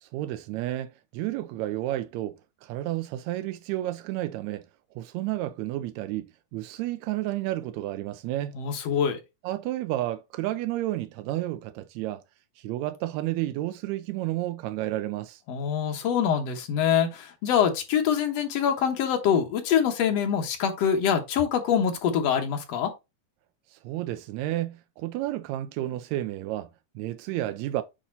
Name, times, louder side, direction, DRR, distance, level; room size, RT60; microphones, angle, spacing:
voice 1, 0.0-4.6 4.9-8.6 9.4-12.2 12.6-15.4 23.7-26.7 26.9-27.8, right 15 dB, 85° right, 1.6 m, -31 dB
voice 2, 8.5-9.2 15.5-22.9, left 8 dB, 65° left, 1.9 m, -25 dB
8.6 x 3.0 x 4.0 m
omnidirectional pair, 3.6 m